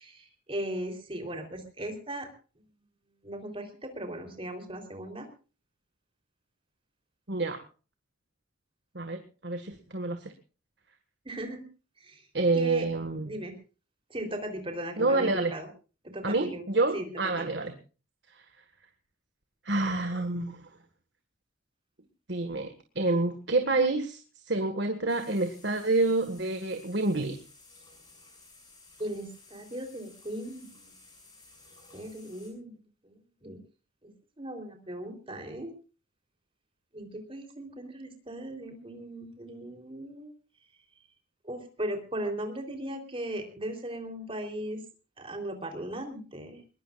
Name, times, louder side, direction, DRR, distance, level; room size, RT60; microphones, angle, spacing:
voice 1, 0.0-2.3 3.2-5.3 11.3-11.6 12.0-12.2 12.5-12.9 13.3-13.5 14.1-15.7 16.0-16.6 16.9-17.5 29.0-30.9 31.9-33.6 34.0-35.7 36.9-40.3 41.4-44.8 45.2-46.6, right 1 dB, 30° right, 4 dB, 3.6 m, -38 dB
voice 2, 7.3-7.6 9.0-10.3 12.3-13.3 15.0-15.5 16.2-17.7 19.7-20.7 22.3-24.2 24.5-27.4, right 2 dB, 60° right, 7 dB, 1.8 m, -28 dB
sound 1, 25.1-32.5, left 3 dB, 20° left, 7.1 m, -55 dB
21.5 x 21.0 x 2.5 m, 0.35 s
head